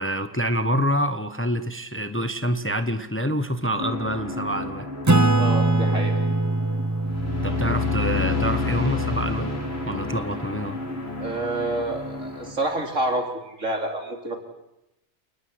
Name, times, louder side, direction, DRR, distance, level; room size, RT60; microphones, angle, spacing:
voice 1, 0.0-4.9 7.4-9.5 9.9-10.8, equal, 10° left, 10 dB, 1.0 m, -26 dB
sound 1, 3.8-12.5, left 3 dB, 50° left, 4.1 m, -30 dB
Acoustic guitar / Strum, 5.1-10.1, right 2 dB, 15° right, 0.8 m, -24 dB
voice 2, 5.3-6.1 11.2-14.4, right 2 dB, 80° right, 3 dB, 4.2 m, -28 dB
28.5 x 19.5 x 8.1 m, 0.89 s
omnidirectional pair, 1.3 m